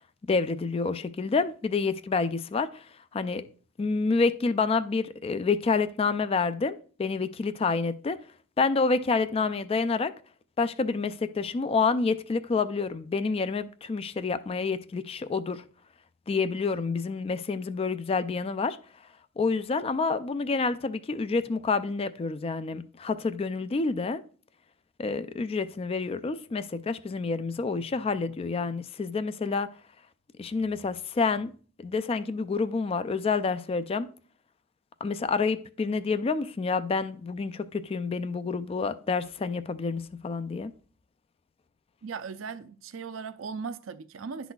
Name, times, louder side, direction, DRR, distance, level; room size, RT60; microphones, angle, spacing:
voice 1, 0.2-2.9 3.1-3.5 3.8-8.2 8.6-10.1 10.6-15.6 16.3-18.8 19.4-24.2 25.0-29.7 30.4-31.5 31.8-34.1 35.0-40.7, left 4 dB, 30° left, 0.3 m, -28 dB
voice 2, 42.0-44.5, right 5 dB, 75° right, 0.5 m, -38 dB
11.0 x 4.0 x 2.3 m
head